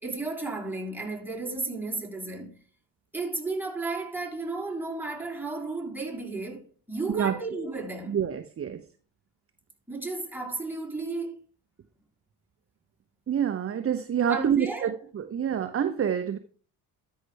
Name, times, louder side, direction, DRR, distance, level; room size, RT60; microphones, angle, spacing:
voice 1, 0.0-2.6 3.1-8.2 9.9-11.4 14.3-14.9, right 3 dB, 5° right, 3.4 m, -33 dB
voice 2, 8.1-8.8 13.3-16.4, right 8 dB, 30° right, 0.7 m, -27 dB
12.5 x 5.7 x 3.3 m
hypercardioid pair, 60°, 46 cm